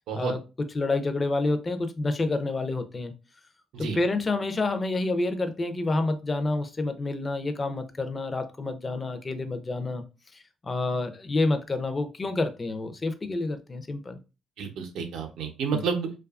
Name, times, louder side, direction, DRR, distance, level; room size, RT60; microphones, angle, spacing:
voice 1, 0.7-3.1 3.8-10.0 10.3-14.2 15.7-15.8, left 2 dB, 30° left, 0.4 m, -28 dB
voice 2, 14.6-16.1, right 6 dB, 85° right, 0.6 m, -30 dB
2.6 x 2.3 x 2.4 m
cardioid pair, 90°, 0 cm